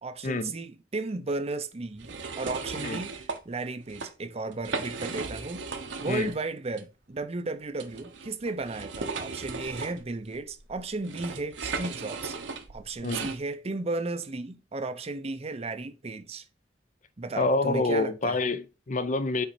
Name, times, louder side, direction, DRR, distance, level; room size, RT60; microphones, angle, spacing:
voice 1, 0.0-12.3 12.7-16.4 17.2-18.4, right 3 dB, 35° right, 0.6 m, -34 dB
sound 1, 2.0-3.4 3.8-4.1 4.5-6.4 6.7-6.8 7.8-13.4, right 4 dB, 70° right, 1.0 m, -36 dB
voice 2, 17.4-19.5, left 3 dB, 40° left, 0.6 m, -27 dB
5.9 x 4.1 x 4.2 m
head